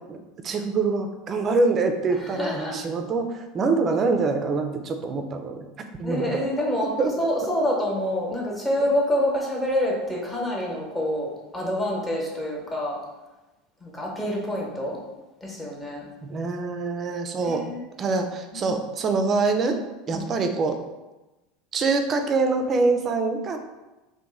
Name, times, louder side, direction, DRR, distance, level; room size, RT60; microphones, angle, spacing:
voice 1, 0.4-5.7 6.0-6.3 7.0-7.1 16.2-17.6 18.0-19.8 20.1-20.8 21.7-23.6, right 3 dB, 35° right, 6 dB, 0.4 m, -24 dB
voice 2, 2.1-2.8 6.0-13.0 13.8-15.0 15.4-16.1 17.4-17.9 18.5-18.7 20.1-20.3, left 1 dB, 15° left, -3 dB, 1.0 m, -27 dB
2.9 x 2.2 x 3.5 m, 1.1 s
hypercardioid pair, 75°, 0 cm